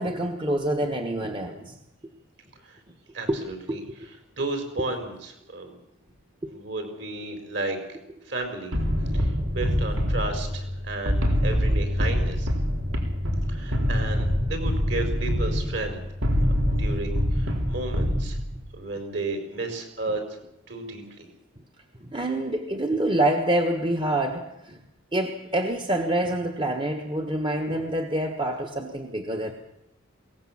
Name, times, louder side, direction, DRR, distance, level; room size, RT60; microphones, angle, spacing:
voice 1, 0.0-1.8 3.3-3.4 3.7-3.9 6.4-6.5 22.0-24.8 25.1-29.5, right 1 dB, 25° right, 4 dB, 1.3 m, -26 dB
voice 2, 3.1-3.8 4.4-5.7 6.5-7.8 8.3-8.7 9.1-12.5 13.5-16.0 16.8-18.4 18.7-20.2 20.7-21.3, right 2 dB, 60° right, 6 dB, 4.6 m, -33 dB
sound 1, 8.7-18.7, equal, 85° right, 3.8 m, -25 dB
22.0 x 18.0 x 7.4 m, 0.84 s
head